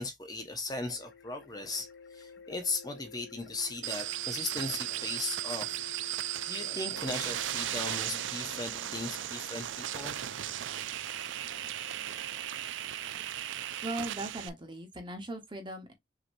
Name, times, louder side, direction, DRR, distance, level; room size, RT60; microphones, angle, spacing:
voice 1, 0.0-10.2, left 2 dB, 20° left, 0.8 m, -38 dB
sound 1, 0.8-13.8, left 6 dB, 75° left, 1.0 m, -52 dB
sound 2, 3.8-14.5, right 12 dB, 85° right, 0.4 m, -36 dB
voice 2, 13.8-15.9, right 1 dB, 25° right, 1.1 m, -39 dB
6.2 x 3.0 x 2.6 m
head